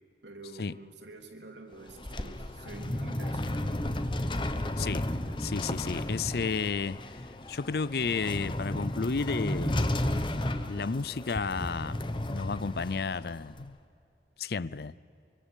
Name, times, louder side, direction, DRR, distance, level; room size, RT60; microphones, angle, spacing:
voice 1, 0.2-3.9, right 2 dB, 85° right, 3.5 m, -47 dB
sound 1, 1.7-13.6, left 1 dB, 25° left, 1.1 m, -33 dB
voice 2, 4.8-5.1 5.4-7.0 7.5-9.9 10.7-12.0 12.3-13.8 14.4-14.9, left 4 dB, 60° left, 0.5 m, -32 dB
25.0 x 24.5 x 8.3 m
head